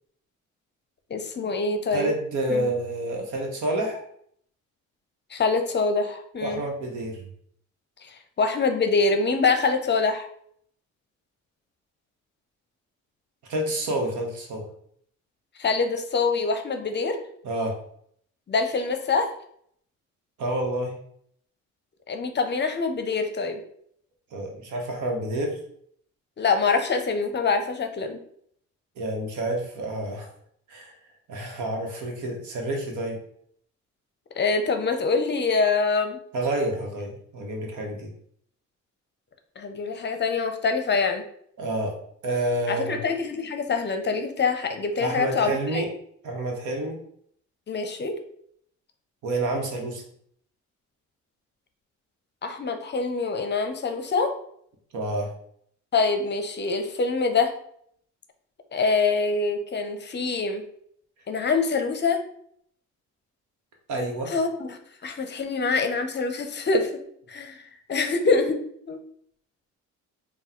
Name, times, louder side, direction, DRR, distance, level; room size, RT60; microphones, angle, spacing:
voice 1, 1.1-2.1 2.5-2.7 5.3-6.6 8.0-10.3 15.6-17.2 18.5-19.3 22.1-23.6 26.4-28.2 34.4-36.2 39.6-41.2 42.7-45.8 47.7-48.2 52.4-54.3 55.9-57.5 58.7-60.6 61.3-62.2 64.3-66.9 67.3-68.6 68.9-69.0, left 4 dB, 35° left, 6 dB, 0.6 m, -25 dB
voice 2, 1.9-4.0 6.4-7.2 13.5-14.7 17.4-17.8 20.4-21.0 24.3-25.6 29.0-30.3 30.7-30.9 31.3-33.2 36.3-38.1 41.6-41.9 42.2-43.0 45.0-45.9 46.2-47.0 49.2-50.0 54.9-55.3 63.9-64.3, right 1 dB, 75° right, 1 dB, 1.1 m, -28 dB
3.6 x 2.3 x 4.3 m, 0.66 s
cardioid pair, 90°, 30 cm